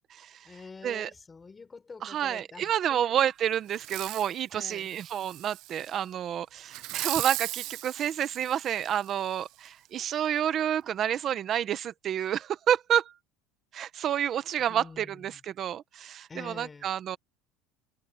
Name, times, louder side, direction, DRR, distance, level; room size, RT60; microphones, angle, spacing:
voice 1, 0.4-3.2 4.5-4.9 14.7-15.4 16.3-16.9, left 4 dB, 15° left, 5.7 m, -46 dB
voice 2, 2.0-13.1 13.7-17.2, right 10 dB, 35° right, 1.1 m, -29 dB
Fireworks, 3.7-4.4 4.9-5.9 6.7-9.1 9.7-9.8, right 17 dB, 55° right, 1.2 m, -37 dB
cardioid pair, 155°, 0 cm